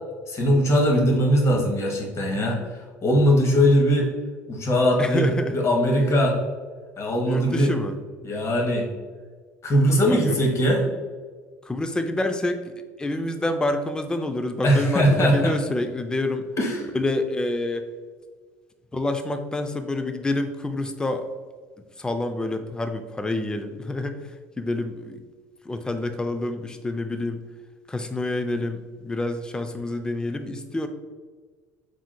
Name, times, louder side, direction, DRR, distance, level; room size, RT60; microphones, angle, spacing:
voice 1, 0.3-2.6 3.0-4.1 4.5-5.3 5.5-6.4 7.0-7.7 8.2-8.9 9.6-10.8 14.6-15.5 16.6-16.8, equal, 35° left, 1 dB, 1.1 m, -20 dB
voice 2, 5.0-5.6 7.3-8.0 10.1-10.4 11.6-16.5 16.9-17.8 18.9-21.3 22.0-25.2 25.6-27.4 27.9-30.9, left 2 dB, 10° left, 7 dB, 0.4 m, -28 dB
4.8 x 3.6 x 2.2 m, 1.5 s
figure-of-eight pair, 65°, 8 cm